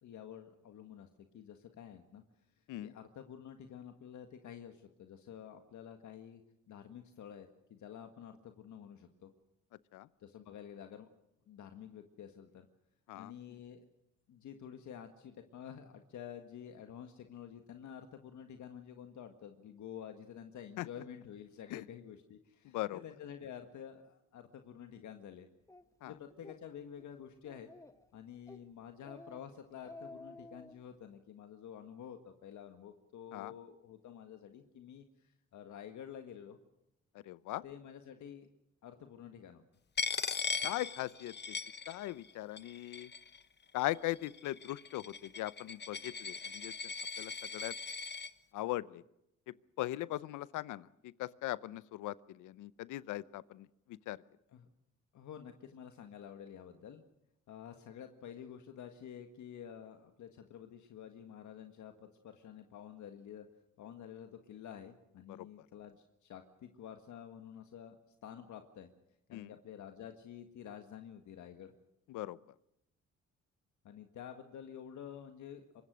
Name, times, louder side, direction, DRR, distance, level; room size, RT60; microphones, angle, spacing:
voice 1, 0.0-2.2 2.8-6.4 6.7-9.3 10.2-11.1 11.5-12.7 13.1-13.9 14.3-25.5 26.0-27.7 28.1-35.1 35.5-36.6 37.6-38.5 38.8-39.6 54.5-54.7 55.1-57.0 57.5-63.5 63.8-68.0 68.2-68.9 69.3-71.7 73.8-75.8, left 9 dB, 70° left, 6 dB, 1.8 m, -50 dB
voice 2, 22.6-23.0 26.0-26.1 33.3-33.5 37.1-37.6 40.6-41.6 41.9-43.1 43.7-46.9 47.2-47.7 48.5-49.0 49.5-54.2 65.3-65.7 69.3-69.5 72.1-72.4, left 16 dB, 90° left, 19 dB, 0.8 m, -40 dB
Speech, 25.7-25.8 26.3-26.6 27.0-27.1 27.4-28.1 28.5-28.7 29.0-29.4 29.7-30.8, left 2 dB, 10° left, 1.4 m, -52 dB
Coin (dropping), 40.0-42.3 42.6-43.4 44.1-48.3, left 5 dB, 35° left, 1.2 m, -39 dB
24.5 x 21.0 x 6.3 m, 0.83 s
cardioid pair, 90°, 30 cm